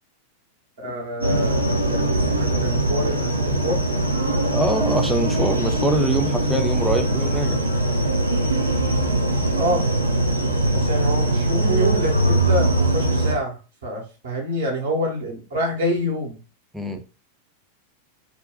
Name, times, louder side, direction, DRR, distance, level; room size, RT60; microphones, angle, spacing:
voice 1, 0.8-3.8 9.6-9.8 10.7-16.4 16.9-17.0, equal, 65° right, 0 dB, 1.1 m, -27 dB
sound 1, 1.2-13.3, right 1 dB, 85° right, 0.5 m, -21 dB
voice 2, 4.4-7.6 16.7-17.0, right 1 dB, 5° right, 4 dB, 0.4 m, -24 dB
2.5 x 2.2 x 3.7 m, 0.33 s
figure-of-eight pair, 90°, 0 cm